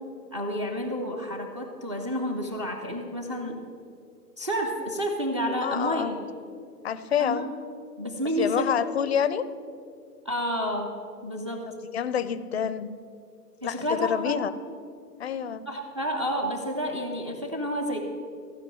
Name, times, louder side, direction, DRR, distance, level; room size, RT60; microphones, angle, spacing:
voice 1, 0.3-3.6 4.4-6.2 7.2-7.5 8.0-8.7 9.0-9.1 10.2-11.7 13.6-14.3 15.7-18.0, equal, 20° right, 3 dB, 0.4 m, -30 dB
voice 2, 5.6-6.1 6.8-7.5 8.4-9.5 11.9-12.9 13.6-14.5 15.2-15.6, left 8 dB, 45° left, 14 dB, 0.5 m, -27 dB
15.0 x 5.1 x 7.6 m, 2.4 s
figure-of-eight pair, 130°, 48 cm